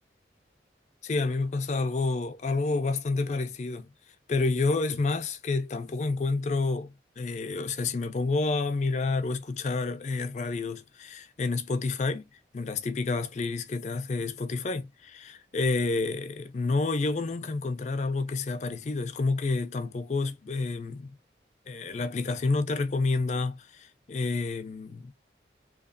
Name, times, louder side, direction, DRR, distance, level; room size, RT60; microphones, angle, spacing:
voice 1, 1.0-3.9 4.3-21.1 21.7-25.1, left 3 dB, 40° left, 0.4 m, -29 dB
2.8 x 2.3 x 2.4 m
head